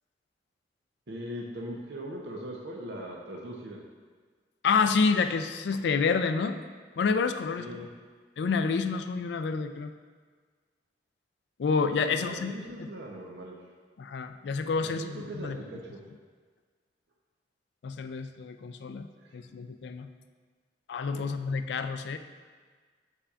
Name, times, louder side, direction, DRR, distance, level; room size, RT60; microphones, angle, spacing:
voice 1, 1.1-3.8 7.6-7.9 12.0-13.6 14.8-16.0 19.2-19.3 21.1-21.3, equal, 70° right, -1 dB, 0.7 m, -40 dB
voice 2, 4.6-6.6 7.0-7.9 8.4-9.9 11.6-12.9 14.0-15.6 17.8-19.1 19.3-20.1 20.9-22.2, left 5 dB, 70° left, 9 dB, 0.3 m, -28 dB
7.9 x 5.6 x 2.4 m, 1.5 s
head